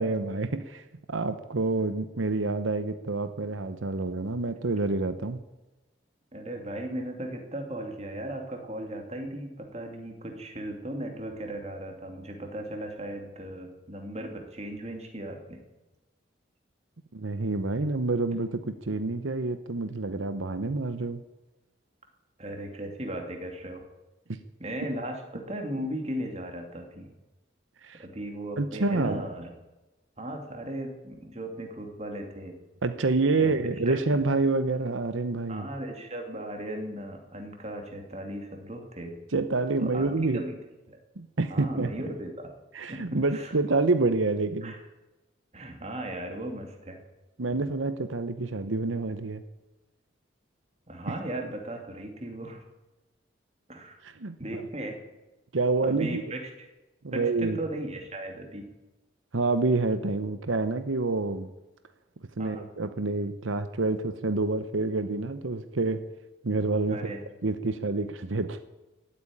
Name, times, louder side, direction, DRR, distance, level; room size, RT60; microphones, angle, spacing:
voice 1, 0.0-5.4 17.1-21.2 24.3-24.4 27.8-28.0 28.6-29.2 32.8-35.7 39.3-40.4 41.2-42.0 42.7-44.7 47.4-49.4 54.0-54.6 55.5-56.3 57.0-57.6 59.3-61.5 62.4-66.0 66.4-67.0 67.4-68.6, right 3 dB, 85° right, 11 dB, 0.9 m, -28 dB
voice 2, 6.3-15.6 22.4-23.8 24.6-27.1 28.0-29.5 30.2-32.6 33.4-33.5 33.9-34.0 35.5-39.2 39.8-40.6 40.9-41.0 41.5-42.5 42.9-43.5 44.6-44.8 45.5-47.0 50.9-52.6 53.7-54.0 54.4-55.0 55.8-56.5 57.1-58.7 62.4-62.7 66.9-67.2, right 1 dB, 35° right, 3 dB, 2.6 m, -37 dB
16.0 x 8.8 x 9.9 m, 1.1 s
head